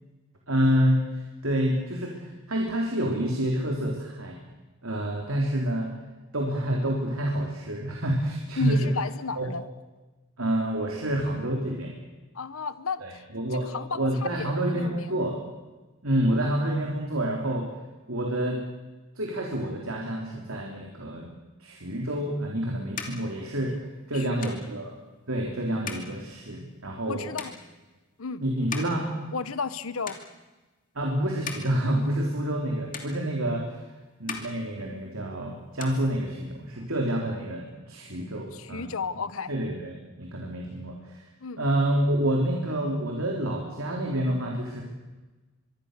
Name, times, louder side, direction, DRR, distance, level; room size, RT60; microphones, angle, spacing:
voice 1, 0.5-1.0 1.4-4.4 4.8-6.0 6.3-8.9 9.4-9.5 10.4-12.0 13.0-13.7 13.9-15.4 16.0-17.7 18.1-18.6 19.2-21.3 21.6-23.8 24.1-24.9 25.3-27.2 28.4-29.1 31.0-33.9 34.2-38.9 39.5-41.2 41.6-44.8, right 1 dB, 85° right, 0 dB, 3.7 m, -28 dB
voice 2, 8.6-9.6 12.3-13.2 13.6-14.1 14.4-15.2 24.1-24.5 27.1-27.5 28.2-28.4 29.3-30.2 38.5-39.5 41.4-41.6, left 5 dB, 85° left, 13 dB, 1.0 m, -33 dB
sound 1, 22.1-29.8 30.0-30.7 31.2-32.7 32.9-33.8 34.1-35.3 35.6-36.7, left 5 dB, 40° left, 2.7 m, -42 dB
24.5 x 23.5 x 6.7 m, 1.2 s
head